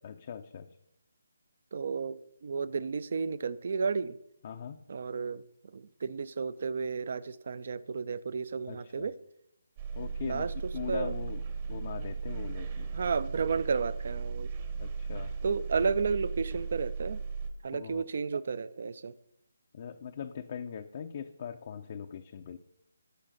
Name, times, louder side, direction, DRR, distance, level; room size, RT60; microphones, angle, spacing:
voice 1, 0.0-0.8 4.4-4.8 8.7-9.1 9.9-12.9 14.8-15.3 17.7-18.0 19.7-22.6, left 7 dB, 40° left, 0.5 m, -41 dB
voice 2, 1.7-4.2 4.9-5.4 5.7-9.2 10.2-10.5 10.9-11.1 12.9-14.5 15.4-17.2 17.6-19.1, right 5 dB, 50° right, 0.4 m, -32 dB
sound 1, 9.8-17.5, right 5 dB, 35° right, 1.0 m, -36 dB
15.0 x 5.6 x 3.9 m
figure-of-eight pair, 150°, 0 cm